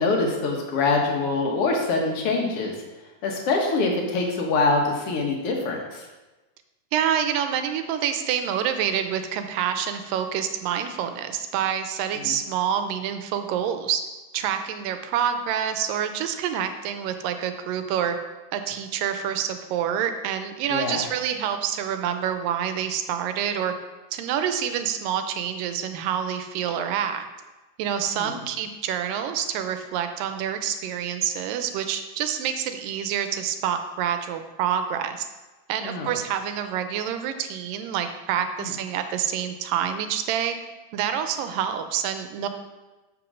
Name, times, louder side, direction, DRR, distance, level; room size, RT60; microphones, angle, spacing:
voice 1, 0.0-2.7 3.2-6.0 12.2-12.4 20.7-21.0 28.1-28.3 35.8-36.1 38.6-38.7, left 3 dB, 55° left, 1 dB, 1.9 m, -24 dB
voice 2, 6.9-14.0 14.3-18.2 18.5-23.7 24.1-27.3 27.8-35.3 35.7-40.6 40.9-42.5, right 9 dB, 85° right, 8 dB, 2.4 m, -27 dB
7.7 x 6.1 x 6.3 m, 1.1 s
omnidirectional pair, 3.9 m